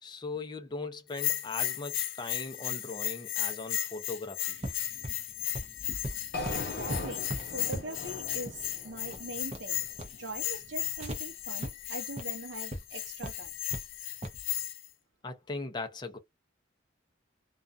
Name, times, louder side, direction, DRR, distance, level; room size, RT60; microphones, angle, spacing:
voice 1, 0.0-4.6 15.2-16.2, left 3 dB, 20° left, 0.5 m, -39 dB
Bell, 1.1-14.9, left 13 dB, 75° left, 0.5 m, -35 dB
sound 1, 4.6-11.2 11.6-11.7 12.1-12.2 12.7-12.8 13.2-13.8 14.2-14.4, equal, 30° right, 0.5 m, -40 dB
sound 2, 6.3-10.5, left 2 dB, 50° left, 0.9 m, -40 dB
voice 2, 6.5-9.8 10.2-13.6, right 2 dB, 70° right, 0.7 m, -42 dB
2.4 x 2.3 x 2.5 m
head